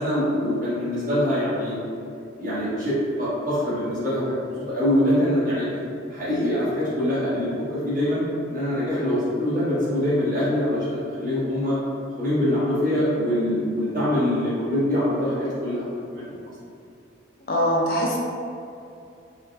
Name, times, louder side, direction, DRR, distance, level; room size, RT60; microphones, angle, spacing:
voice 1, 0.0-1.8 2.4-5.6 6.1-8.2 8.5-11.8 12.2-15.8 16.1-16.3, left 1 dB, 45° right, -12 dB, 1.4 m, -24 dB
voice 2, 17.5-18.2, equal, 50° left, -3 dB, 0.4 m, -22 dB
3.9 x 2.5 x 2.2 m, 2.6 s
head